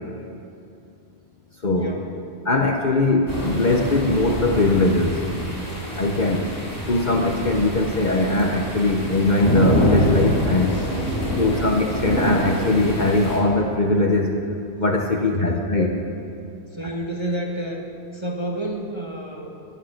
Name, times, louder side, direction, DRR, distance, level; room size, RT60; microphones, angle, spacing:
voice 1, 1.7-2.1 6.2-6.4 10.7-11.8 15.2-15.6 16.7-17.8 18.1-19.5, right 1 dB, 25° right, 0 dB, 1.4 m, -31 dB
voice 2, 2.5-5.2 6.0-6.4 6.9-10.7 11.4-14.4 14.8-15.9 16.8-16.9, left 2 dB, 45° left, 1 dB, 1.1 m, -20 dB
sound 1, 3.3-13.4, equal, 15° left, 3.7 m, -26 dB
20.0 x 10.5 x 6.5 m, 2.6 s
omnidirectional pair, 1.1 m